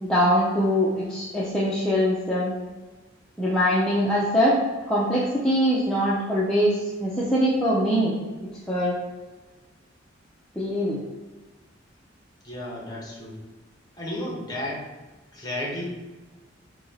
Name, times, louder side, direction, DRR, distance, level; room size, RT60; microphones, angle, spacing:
voice 1, 0.0-2.5 3.4-4.6 4.9-8.1 8.7-8.9 10.6-11.0, equal, 5° left, -8 dB, 0.6 m, -22 dB
voice 2, 12.4-13.4 14.0-14.9 15.3-15.8, left 1 dB, 20° left, -3 dB, 1.1 m, -33 dB
4.2 x 2.9 x 4.2 m, 1.2 s
head